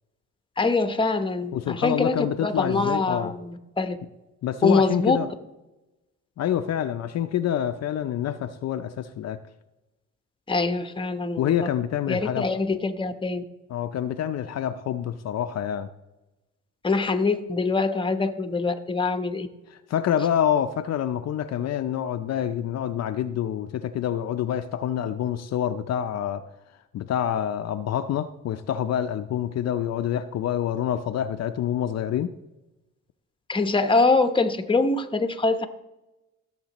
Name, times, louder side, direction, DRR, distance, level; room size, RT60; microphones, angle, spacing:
voice 1, 0.6-4.0 4.6-5.2 10.5-11.5 12.1-13.4 16.8-19.5 33.5-35.7, left 3 dB, 15° left, 0.9 m, -24 dB
voice 2, 1.5-3.3 4.4-5.3 6.4-9.4 11.4-12.5 13.7-15.9 19.7-26.4 26.9-32.3, left 10 dB, 60° left, 0.5 m, -27 dB
16.0 x 7.4 x 3.0 m
cardioid pair, 90°, 30 cm